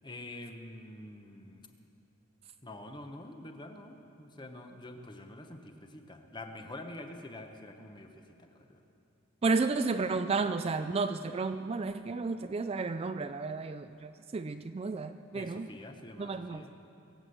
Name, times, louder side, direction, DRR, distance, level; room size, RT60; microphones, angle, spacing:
voice 1, 0.0-1.7 2.6-8.8 15.3-16.7, left 1 dB, 20° left, 5 dB, 1.0 m, -46 dB
voice 2, 9.4-15.7 16.2-16.6, right 4 dB, 30° right, 9 dB, 0.3 m, -32 dB
22.0 x 8.2 x 7.9 m, 2.7 s
head